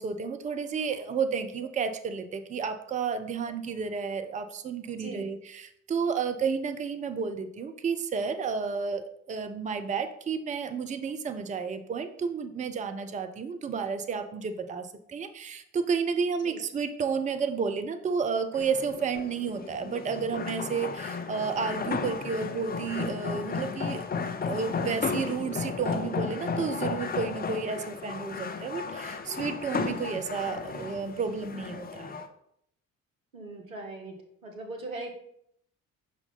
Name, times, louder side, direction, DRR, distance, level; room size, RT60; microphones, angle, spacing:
voice 1, 0.0-24.0 24.4-32.2, right 5 dB, 20° right, 8 dB, 0.6 m, -31 dB
sound 1, 18.5-32.3, left 5 dB, 25° left, 0.7 m, -34 dB
voice 2, 33.3-34.1 34.4-35.1, right 2 dB, 85° right, 1 dB, 1.1 m, -39 dB
5.9 x 3.9 x 5.5 m, 0.70 s
figure-of-eight pair, 50°, 39 cm